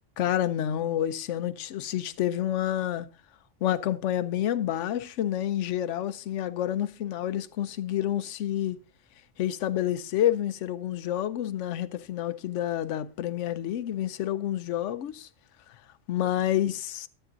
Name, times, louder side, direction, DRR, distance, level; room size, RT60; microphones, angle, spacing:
voice 1, 0.2-3.1 3.6-8.8 9.4-15.3 15.7-15.8 16.1-17.1, left 11 dB, 80° left, 0.9 m, -29 dB
12.5 x 8.7 x 2.6 m
omnidirectional pair, 1.2 m